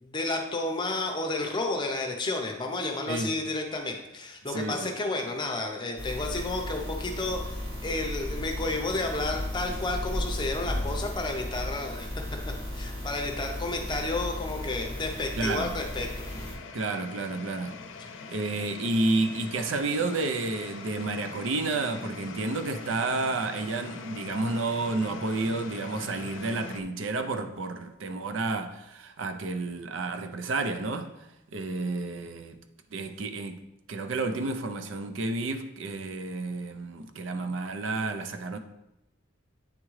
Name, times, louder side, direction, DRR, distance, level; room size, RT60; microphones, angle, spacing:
voice 1, 0.0-12.1 12.7-16.3, left 2 dB, 20° left, 0.7 m, -31 dB
voice 2, 4.5-4.9 15.4-15.7 16.7-17.8 18.3-32.6 32.9-33.6 33.9-38.6, right 3 dB, 70° right, 0.5 m, -31 dB
sound 1, 6.0-16.6, left 1 dB, 30° right, 2.1 m, -35 dB
sound 2, 12.1-26.8, left 4 dB, 70° left, 0.5 m, -44 dB
8.6 x 3.6 x 3.1 m
head